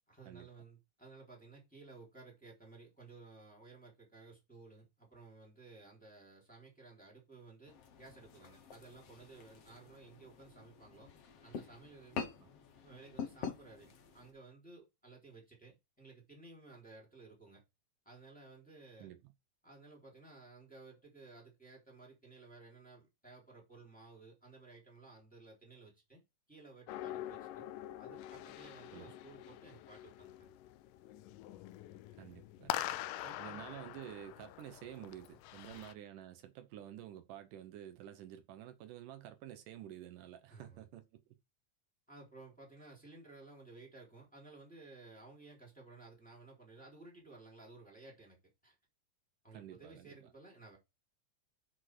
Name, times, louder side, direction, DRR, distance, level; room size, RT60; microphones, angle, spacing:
voice 1, 0.1-11.1 11.4-12.3 12.8-17.6 18.0-19.1 19.6-26.2 26.5-27.7 28.0-30.5 33.2-33.6 35.7-35.8 40.5-40.8 42.1-48.4 48.6-48.7 49.4-50.8, right 3 dB, 5° left, 3.0 m, -56 dB
sound 1, 7.7-14.3, left 6 dB, 55° left, 2.1 m, -47 dB
sound 2, 26.9-35.9, left 14 dB, 90° left, 2.2 m, -45 dB
voice 2, 32.2-32.8 33.4-41.1 49.5-50.2, right 11 dB, 80° right, 2.4 m, -50 dB
6.4 x 6.2 x 4.7 m
omnidirectional pair, 3.7 m